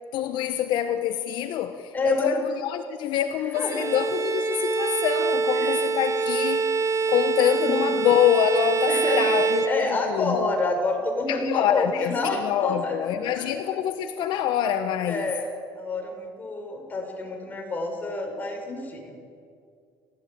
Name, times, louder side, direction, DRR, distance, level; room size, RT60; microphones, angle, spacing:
voice 1, 0.1-6.7 7.1-10.5 11.3-15.3, left 10 dB, 70° left, 1.2 m, -25 dB
voice 2, 1.9-2.3 3.5-3.9 5.5-5.8 7.6-8.1 8.9-9.2 9.7-13.5 15.1-19.1, left 2 dB, 20° left, 5.2 m, -28 dB
Bowed string instrument, 3.5-10.3, right 5 dB, 35° right, 1.9 m, -25 dB
29.0 x 14.5 x 9.0 m
cardioid pair, 130°, 8 cm